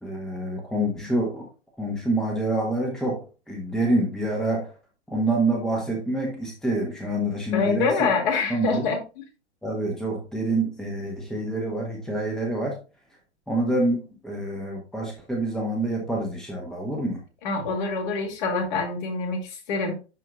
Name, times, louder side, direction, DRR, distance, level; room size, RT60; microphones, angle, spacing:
voice 1, 0.0-1.5 1.8-4.7 5.1-8.1 8.5-8.9 9.6-12.8 13.5-17.2, right 1 dB, ahead, 0 dB, 1.3 m, -27 dB
voice 2, 7.5-9.0 17.4-19.9, left 4 dB, 40° left, 3 dB, 2.3 m, -25 dB
11.5 x 4.5 x 2.3 m, 0.32 s
figure-of-eight pair, 110°, 34 cm